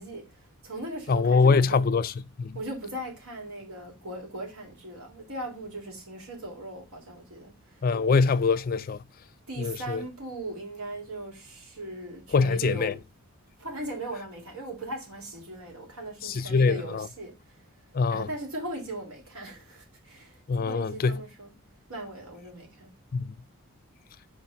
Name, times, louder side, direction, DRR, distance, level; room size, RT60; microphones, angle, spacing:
voice 1, 0.0-1.9 2.5-7.9 9.5-13.0 13.6-17.6 18.1-21.5 21.9-22.9, right 1 dB, 75° right, 3.2 m, -39 dB
voice 2, 1.1-2.1 2.4-2.6 7.8-9.0 9.6-10.0 12.3-12.9 16.2-17.1 17.9-18.3 20.5-21.2 23.1-23.3, left 4 dB, 40° left, 0.3 m, -23 dB
5.1 x 4.1 x 5.7 m
head